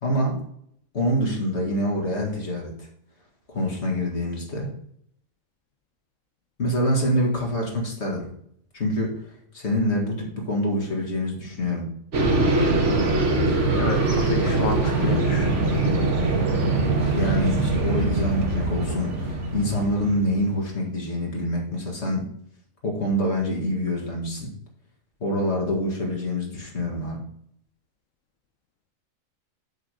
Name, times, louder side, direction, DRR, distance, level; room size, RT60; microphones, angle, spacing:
voice 1, 0.0-0.4 0.9-2.9 3.5-4.7 6.6-8.3 8.7-9.2 9.5-11.9 17.1-22.3 22.8-24.5 25.2-27.2, equal, 55° left, -1 dB, 2.3 m, -26 dB
sound 1, 12.1-20.4, right 2 dB, 65° right, 1.5 m, -22 dB
voice 2, 13.8-15.5, left 6 dB, 70° left, 4 dB, 1.1 m, -30 dB
7.9 x 3.8 x 6.4 m, 0.68 s
omnidirectional pair, 1.4 m